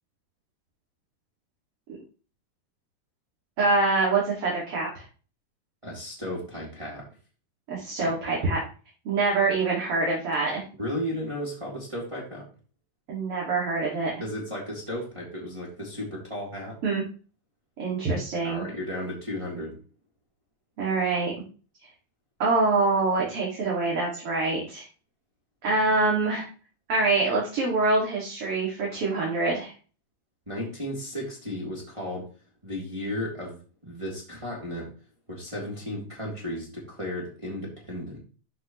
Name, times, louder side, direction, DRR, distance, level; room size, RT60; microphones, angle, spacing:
voice 1, 3.6-5.0 7.7-8.6 9.0-10.6 13.1-14.1 16.8-17.0 17.8-18.6 20.8-21.3 22.4-24.8 25.6-26.5 26.9-29.7, right 3 dB, 45° right, -4 dB, 3.0 m, -25 dB
voice 2, 5.8-7.0 8.0-8.3 10.8-12.4 14.2-16.8 18.4-19.8 30.5-32.2 32.6-33.6 33.8-34.9 35.3-38.2, left 1 dB, 10° right, -4 dB, 3.0 m, -34 dB
12.5 x 6.0 x 3.1 m, 0.37 s
omnidirectional pair, 4.0 m